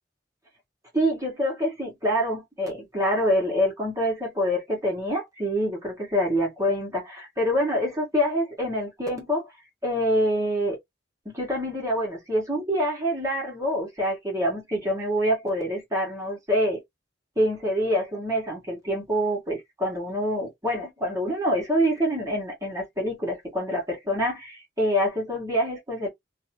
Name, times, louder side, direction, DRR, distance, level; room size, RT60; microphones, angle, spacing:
voice 1, 0.9-9.5 9.8-10.8 11.2-16.8 17.4-26.1, equal, 20° right, 1.2 m, -26 dB
2.8 x 2.4 x 2.8 m
head